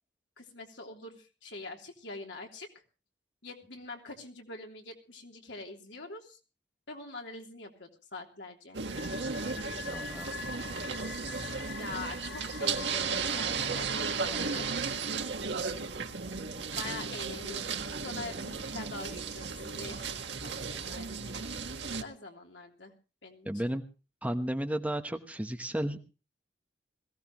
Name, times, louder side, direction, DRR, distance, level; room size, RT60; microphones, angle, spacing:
voice 1, 0.4-2.7 3.4-6.4 6.9-8.8 11.8-14.7 16.7-21.4 22.0-22.9 23.2-23.7, left 3 dB, 80° left, 1 dB, 3.3 m, -44 dB
sound 1, 8.7-22.0, right 5 dB, 80° right, 1.7 m, -35 dB
sound 2, 8.9-14.7, left 5 dB, 50° left, 1.4 m, -44 dB
voice 2, 9.7-10.8 23.4-23.8 24.2-26.0, right 1 dB, 10° right, 6 dB, 1.1 m, -34 dB
21.5 x 16.5 x 3.0 m, 0.33 s
head